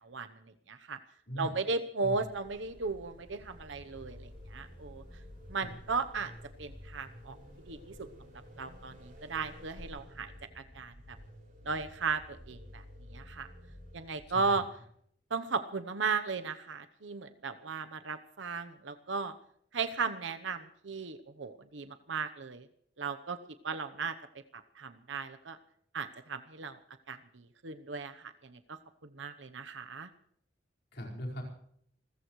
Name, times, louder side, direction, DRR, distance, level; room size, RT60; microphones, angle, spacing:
voice 1, 0.0-1.0 1.4-5.0 5.5-6.3 6.6-7.4 7.7-8.1 8.6-10.9 11.6-12.8 13.1-13.5 13.9-14.6 15.3-19.3 19.7-22.7 23.0-23.4 23.6-24.2 24.5-25.6 25.9-26.8 27.1-30.1, right 4 dB, 80° right, 9 dB, 0.9 m, -36 dB
sound 1, 2.0-9.9, equal, 30° left, 7.2 m, -56 dB
sound 2, 3.3-14.5, left 1 dB, 50° right, 5.8 m, -52 dB
voice 2, 14.3-14.6 30.9-31.4, equal, 60° left, -2 dB, 4.7 m, -40 dB
27.5 x 14.5 x 3.2 m, 0.65 s
head